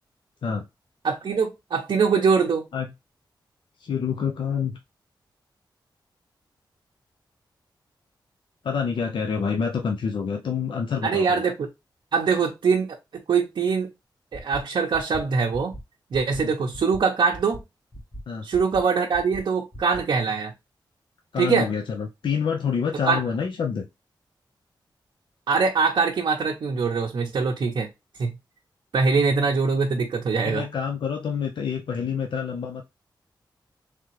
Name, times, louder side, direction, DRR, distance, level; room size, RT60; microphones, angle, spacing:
voice 1, 1.0-2.6 11.0-11.7 12.1-13.9 14.3-15.8 16.1-17.6 18.4-20.5 21.4-21.7 23.0-23.2 25.5-27.9 28.2-28.3 28.9-30.7, right 5 dB, 65° right, 0.6 m, -23 dB
voice 2, 3.8-4.8 8.6-11.4 16.4-16.5 18.3-18.5 21.3-23.9 30.4-32.8, left 6 dB, 75° left, 0.6 m, -27 dB
sound 1, 14.3-14.6 14.9-15.2 15.5-15.8 16.1-16.4 16.7-17.0 17.3-17.6 17.9-18.2 18.5-18.8 19.1-19.4 19.7-20.0, equal, 20° left, 1.0 m, -38 dB
3.7 x 3.3 x 3.1 m
wide cardioid pair, 135°, 8 cm